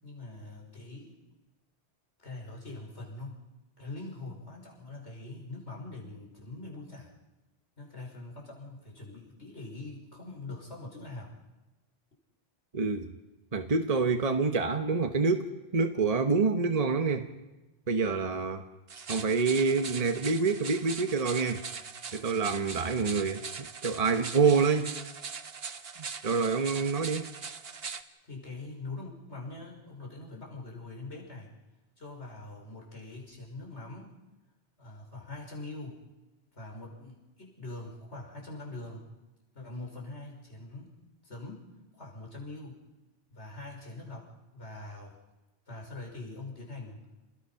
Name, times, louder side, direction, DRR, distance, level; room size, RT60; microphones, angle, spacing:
voice 1, 0.0-1.2 2.2-3.4 3.8-7.1 7.8-11.3 28.2-31.5 32.0-34.1 34.8-36.0 36.5-39.0 39.5-40.9 41.2-41.6 41.9-42.8 43.3-45.2 45.7-47.0, left 2 dB, 85° left, -1 dB, 6.0 m, -43 dB
voice 2, 12.7-13.1 13.5-17.3 17.9-18.6 19.1-21.6 22.1-24.9 26.2-27.3, right 4 dB, 35° right, 6 dB, 1.2 m, -27 dB
sound 1, 18.9-28.0, right 5 dB, 65° right, 1.3 m, -41 dB
29.5 x 20.5 x 5.8 m, 1.1 s
omnidirectional pair, 1.1 m